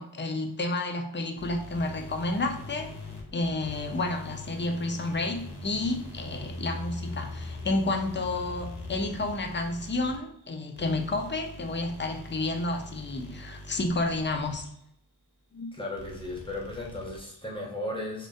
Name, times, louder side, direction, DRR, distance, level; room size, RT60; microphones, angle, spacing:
voice 1, 0.0-2.9 3.3-14.7 15.5-15.7, left 2 dB, 30° left, 4 dB, 0.3 m, -30 dB
sound 1, 1.4-14.8 16.0-17.5, left 2 dB, 70° left, 0.6 m, -42 dB
voice 2, 15.7-18.3, left 1 dB, 10° left, -3 dB, 0.7 m, -35 dB
2.5 x 2.2 x 2.3 m, 0.70 s
wide cardioid pair, 45°, 42 cm